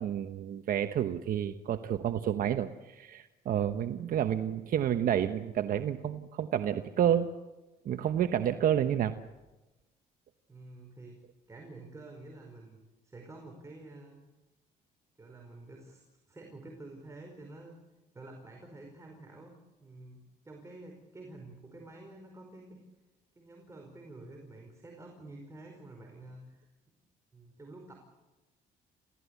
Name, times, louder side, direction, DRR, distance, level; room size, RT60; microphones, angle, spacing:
voice 1, 0.0-7.3 7.8-9.1, right 10 dB, 55° right, 8 dB, 1.1 m, -30 dB
voice 2, 10.5-11.2 11.5-12.8 13.0-14.2 15.2-17.8 18.1-22.8 23.3-26.7 27.3-27.9, right 2 dB, 15° right, 1 dB, 5.0 m, -49 dB
28.0 x 17.0 x 8.4 m, 1.1 s
cardioid pair, 110°, 17 cm